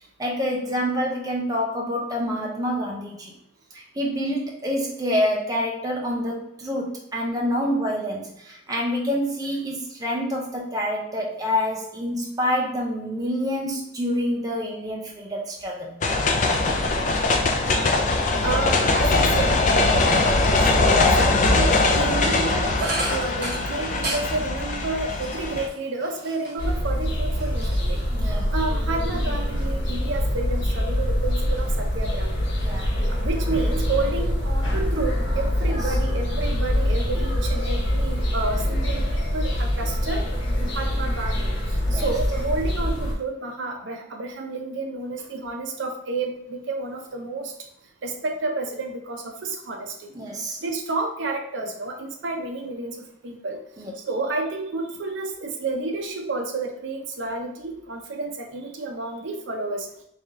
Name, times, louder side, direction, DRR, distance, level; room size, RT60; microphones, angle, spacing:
voice 1, 0.2-3.3 3.7-16.0 22.0-22.3 28.1-28.5 32.6-33.0 33.5-33.6 35.7-35.9 41.9-42.1 50.1-50.6 53.8-53.9, equal, 20° right, -2 dB, 0.6 m, -27 dB
sound 1, 16.0-25.7, left 2 dB, 40° left, 0.4 m, -21 dB
voice 2, 17.6-17.9 18.4-32.3 32.9-40.2 40.6-47.5 48.0-50.1 50.6-53.0 53.2-53.6 54.0-59.9, right 3 dB, 70° right, 3 dB, 0.6 m, -30 dB
sound 2, 22.8-26.7 27.1-28.3, right 2 dB, 55° right, 1.1 m, -34 dB
sound 3, 26.6-43.1, equal, 80° left, 1.1 m, -24 dB
3.3 x 2.7 x 3.5 m, 0.76 s
head